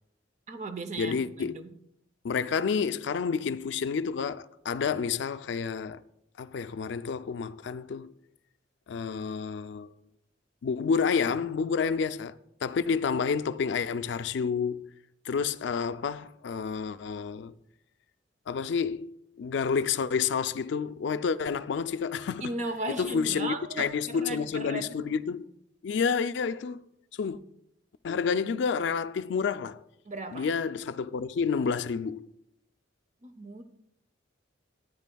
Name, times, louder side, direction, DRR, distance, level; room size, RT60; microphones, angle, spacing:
voice 1, 0.5-1.7 22.4-25.0 30.0-30.5 33.2-33.6, right 2 dB, 40° right, 0.6 m, -36 dB
voice 2, 1.0-1.6 2.2-6.0 6.4-8.1 8.9-9.9 10.6-12.3 12.6-14.9 15.3-17.5 18.5-19.1 19.4-22.5 23.0-25.5 25.8-26.8 27.2-27.4 28.0-29.8 30.3-32.3, left 6 dB, 65° left, 0.4 m, -29 dB
13.5 x 9.0 x 2.3 m
head